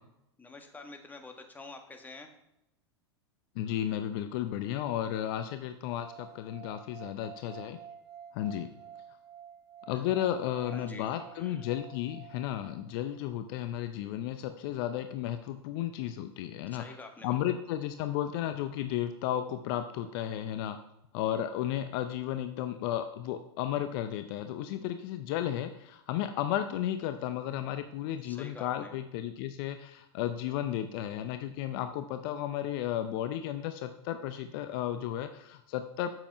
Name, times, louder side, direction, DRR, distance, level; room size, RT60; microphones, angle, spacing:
voice 1, 0.4-2.3 9.9-10.0 10.7-11.7 16.7-17.6 28.2-28.9, left 3 dB, 10° left, 4 dB, 1.5 m, -48 dB
voice 2, 3.6-7.8 8.3-8.7 9.9-17.0 17.2-20.8 21.1-36.1, left 11 dB, 55° left, 9 dB, 0.7 m, -33 dB
sound 1, 5.9-13.0, right 8 dB, 75° right, 1.1 m, -50 dB
7.8 x 7.1 x 5.6 m, 0.85 s
hypercardioid pair, 100°, 14 cm